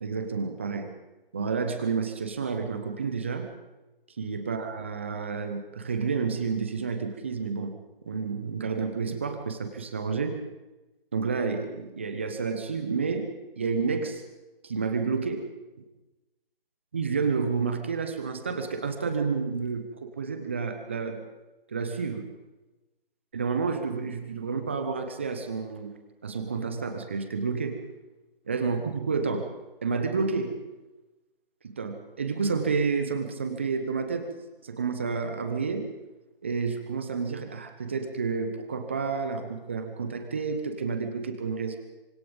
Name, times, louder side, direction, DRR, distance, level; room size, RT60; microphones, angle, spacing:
voice 1, 0.0-0.9 1.3-3.5 4.2-7.7 8.0-10.4 11.1-13.3 13.6-14.2 14.6-15.4 16.9-21.2 21.7-22.3 23.3-25.9 26.2-27.8 28.5-29.5 29.8-30.6 31.7-34.3 34.6-35.9 36.4-41.8, right 5 dB, 10° right, 7 dB, 1.0 m, -30 dB
25.0 x 24.5 x 5.4 m, 1.1 s
figure-of-eight pair, 160°, 30 cm